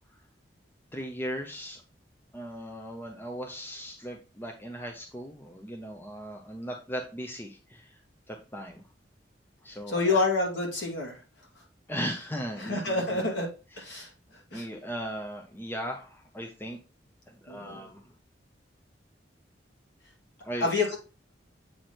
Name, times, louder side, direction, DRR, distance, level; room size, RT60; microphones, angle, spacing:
voice 1, 0.9-1.8 2.3-8.0 8.3-8.9 9.6-10.2 11.9-13.2 13.7-14.0 14.5-16.8 17.3-18.1 20.4-20.7, equal, 10° left, 2 dB, 0.6 m, -38 dB
voice 2, 9.9-11.2 12.6-13.5 13.8-14.1 14.5-14.6 17.5-17.9 20.6-21.0, left 3 dB, 85° left, 0 dB, 2.2 m, -28 dB
7.7 x 3.1 x 4.2 m, 0.33 s
head